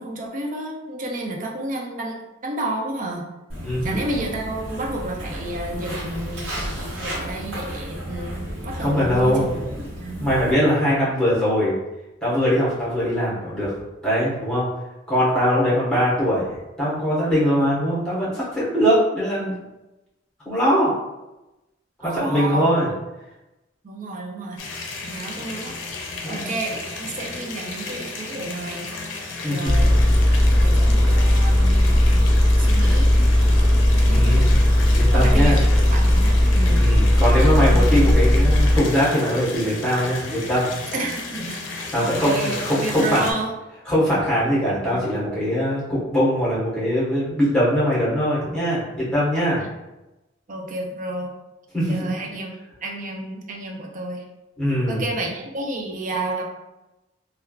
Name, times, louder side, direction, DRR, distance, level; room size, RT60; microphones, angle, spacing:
voice 1, 0.0-3.2 3.8-10.3 19.4-19.5 22.0-22.9 23.8-24.6 25.1-25.8 26.3-28.9 29.4-30.0 30.6-32.0 32.6-33.2 33.9-34.6 35.1-36.9 37.4-38.1 40.9-41.6 42.0-43.5 44.5-45.1 49.6-49.7 50.5-51.3 51.9-52.5 52.8-54.3 54.9-56.4, right 2 dB, 45° right, 0 dB, 0.5 m, -31 dB
Walk footsteps, 3.5-10.5, equal, 90° right, 1.0 m, -33 dB
voice 2, 3.6-4.0 8.7-9.6 10.2-11.7 12.2-13.7 14.0-14.7 15.1-19.5 20.4-21.0 22.0-22.9 26.2-26.5 29.4-30.0 34.1-35.6 36.7-40.7 41.9-43.2 43.9-49.6 51.7-52.1 54.6-55.0, equal, 5° left, -8 dB, 1.2 m, -21 dB
sound 1, 24.6-43.3, left 3 dB, 85° left, 0.5 m, -34 dB
Engine, 29.6-38.8, left 1 dB, 20° left, 0.8 m, -16 dB
3.2 x 2.4 x 2.3 m, 1.0 s
head